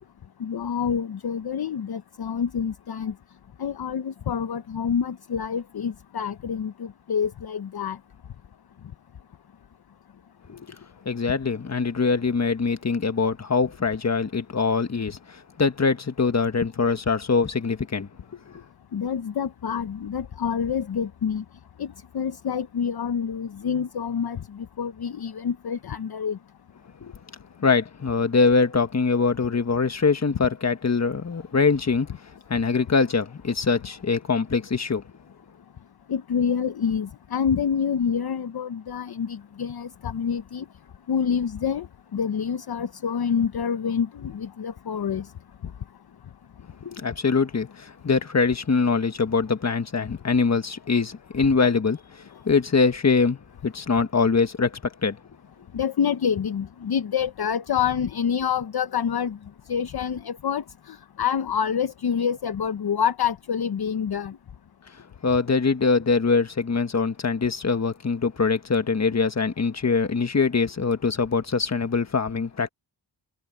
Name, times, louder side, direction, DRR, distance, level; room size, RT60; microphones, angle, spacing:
voice 1, 0.4-3.1 3.6-8.0 18.9-21.4 21.8-26.4 36.1-40.7 41.1-41.9 42.1-45.3 55.7-59.4 59.7-64.4, left 7 dB, 55° left, 0.8 m, -27 dB
voice 2, 11.0-18.1 18.5-18.6 27.0-27.1 27.6-32.1 32.5-35.0 46.8-52.0 52.4-53.4 53.6-55.2 65.2-72.7, left 4 dB, 35° left, 1.5 m, -23 dB
wide cardioid pair, 120°, 45 cm